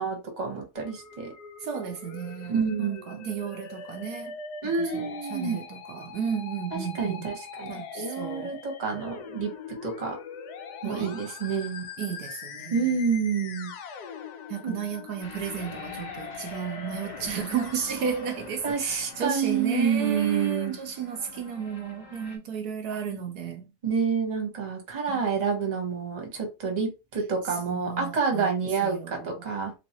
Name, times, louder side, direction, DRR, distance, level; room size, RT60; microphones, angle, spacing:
voice 1, 0.0-1.3 2.5-3.3 4.6-5.6 6.7-10.2 10.8-11.9 12.7-13.7 14.6-14.7 18.6-20.7 23.8-29.7, right 5 dB, 30° right, 1.0 m, -28 dB
Musical instrument, 0.8-18.7, left 6 dB, 75° left, 1.2 m, -42 dB
voice 2, 1.6-4.4 4.6-7.3 7.7-8.6 10.8-11.1 12.0-12.9 14.5-23.7 25.1-25.2 27.7-28.5 28.8-29.3, right 7 dB, 75° right, 1.1 m, -33 dB
sound 1, 15.2-22.4, left 4 dB, 45° left, 1.1 m, -45 dB
3.4 x 3.1 x 2.8 m
omnidirectional pair, 1.7 m